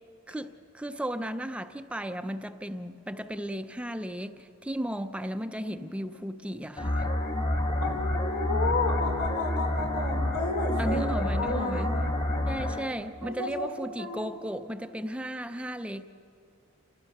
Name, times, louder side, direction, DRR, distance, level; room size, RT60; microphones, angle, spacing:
voice 1, 0.3-7.1 10.8-11.9 12.5-16.0, equal, 5° right, 0.4 m, -35 dB
sound 1, 6.8-12.8, left 1 dB, 30° left, 1.5 m, -29 dB
voice 2, 7.8-12.1 13.2-14.3, left 2 dB, 90° left, 4.3 m, -32 dB
28.5 x 15.5 x 6.6 m
head